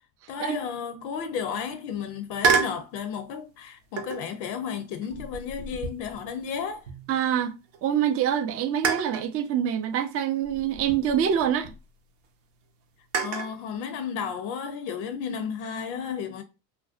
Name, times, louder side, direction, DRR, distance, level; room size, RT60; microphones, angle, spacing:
voice 1, 0.3-6.9 13.2-16.4, left 7 dB, 65° left, 0.5 m, -33 dB
sound 1, 2.4-2.9 4.0-4.3 5.0-7.3 7.7-7.8 8.8-9.3 10.4-11.8 13.1-13.6, right 5 dB, 75° right, 0.7 m, -29 dB
voice 2, 7.1-7.5 7.8-11.7, right 9 dB, 30° right, 0.4 m, -25 dB
2.5 x 2.1 x 2.4 m
hypercardioid pair, 65°, 50 cm